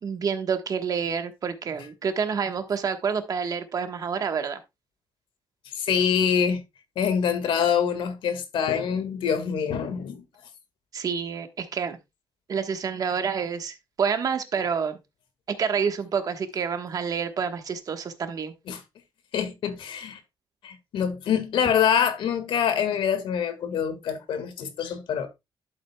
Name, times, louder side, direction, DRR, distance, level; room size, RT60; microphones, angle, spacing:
voice 1, 0.0-4.6 10.9-12.0 12.5-15.0 15.6-18.5, right 6 dB, 45° right, 1.2 m, -28 dB
voice 2, 5.8-6.6 7.0-10.2 18.7-18.8 19.3-20.2 20.6-25.3, left 7 dB, 80° left, 1.7 m, -25 dB
11.5 x 7.7 x 2.2 m
cardioid pair, 140°, 9 cm